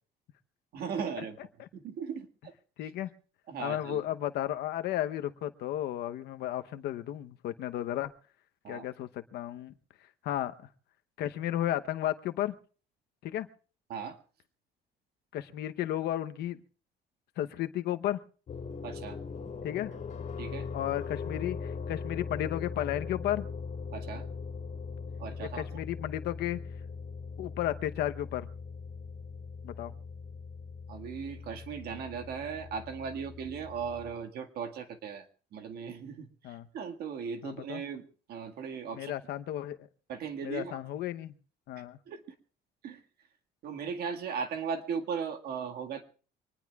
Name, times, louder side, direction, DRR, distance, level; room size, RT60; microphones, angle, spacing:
voice 1, 0.7-1.4 1.7-2.5 2.8-2.9 3.5-4.0 8.6-8.9 13.9-14.2 18.8-19.2 20.4-20.7 23.9-24.3 25.2-25.7 30.9-35.3 35.5-38.0 38.3-39.1 40.1-40.8 42.1-42.3 42.8-43.0 43.6-46.0, right 6 dB, 70° right, 5 dB, 1.9 m, -37 dB
voice 2, 2.8-3.1 3.6-8.1 8.7-9.7 10.2-10.7 11.2-12.5 13.2-13.5 15.3-16.6 17.4-18.2 19.6-19.9 20.7-23.5 25.4-26.6 27.4-28.5 29.6-29.9 36.4-36.7 37.4-37.8 38.9-39.9 40.4-41.4 41.7-42.0, left 12 dB, 75° left, 10 dB, 0.9 m, -33 dB
sound 1, 18.5-34.1, left 5 dB, 45° left, 3.0 m, -40 dB
25.0 x 19.5 x 2.4 m, 0.40 s
cardioid pair, 110°, 17 cm